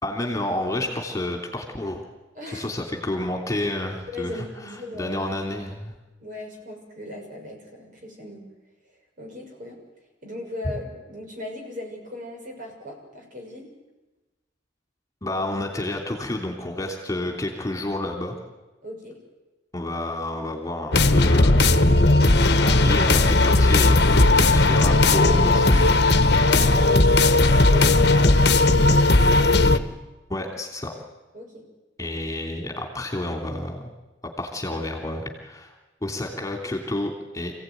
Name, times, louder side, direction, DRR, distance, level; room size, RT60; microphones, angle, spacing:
voice 1, 0.0-2.0 2.5-5.9 15.2-18.3 19.7-22.0 22.6-25.9 30.3-30.9 32.0-33.9 34.4-35.7 36.0-37.5, left 1 dB, 15° left, 2 dB, 3.0 m, -30 dB
voice 2, 2.3-2.7 4.1-5.2 6.2-8.4 9.2-9.8 10.2-13.7 18.8-19.2 26.5-27.1 27.6-28.4 31.3-31.6, left 1 dB, 45° right, 1 dB, 6.5 m, -37 dB
sound 1, 20.9-29.8, left 2 dB, 60° left, 1.4 m, -17 dB
27.5 x 16.5 x 9.4 m, 1.1 s
head